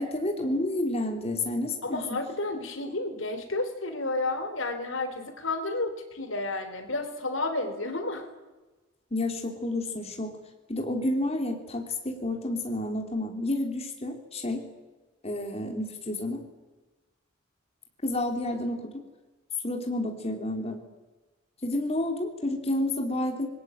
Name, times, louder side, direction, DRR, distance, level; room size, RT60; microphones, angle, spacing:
voice 1, 0.0-2.0 9.1-10.3 10.7-14.6 15.2-16.4 18.0-19.0 19.6-20.8 21.6-23.5, left 1 dB, 30° left, 3 dB, 3.4 m, -30 dB
voice 2, 1.8-8.3, left 2 dB, 75° left, 8 dB, 3.7 m, -31 dB
27.0 x 21.0 x 9.1 m, 1.2 s
head